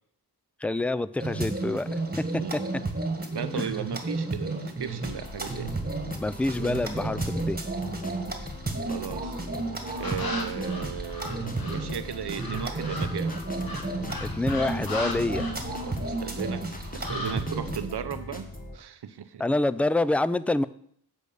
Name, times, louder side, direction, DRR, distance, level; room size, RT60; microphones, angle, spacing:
voice 1, 0.6-2.3 2.5-2.6 3.5-3.7 6.2-7.6 14.2-15.5 19.4-20.7, left 2 dB, 5° left, 16 dB, 0.3 m, -27 dB
sound 1, 1.2-17.9, right 2 dB, 25° right, 1.6 m, -32 dB
voice 2, 2.4-2.7 3.3-5.8 8.9-9.4 10.0-13.4 15.8-16.6 16.9-19.4, right 8 dB, 85° right, 12 dB, 0.7 m, -36 dB
sound 2, 5.0-18.8, left 1 dB, 20° left, 1.5 m, -40 dB
sound 3, 10.0-11.9 12.4-16.2 16.5-17.4, left 2 dB, 65° left, 1.6 m, -37 dB
8.3 x 5.2 x 6.9 m, 0.65 s
cardioid pair, 60°, 39 cm